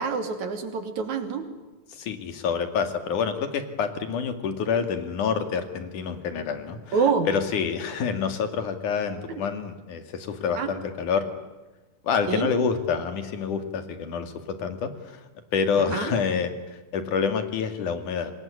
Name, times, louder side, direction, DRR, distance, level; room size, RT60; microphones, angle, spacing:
voice 1, 0.0-1.5 6.9-7.3 10.6-10.7 12.3-12.5 15.8-16.1, right 5 dB, 60° right, 7 dB, 4.0 m, -26 dB
voice 2, 1.9-7.0 7.3-11.3 12.0-18.3, left 6 dB, 65° left, 9 dB, 3.7 m, -27 dB
26.5 x 20.5 x 9.7 m, 1.1 s
omnidirectional pair, 3.9 m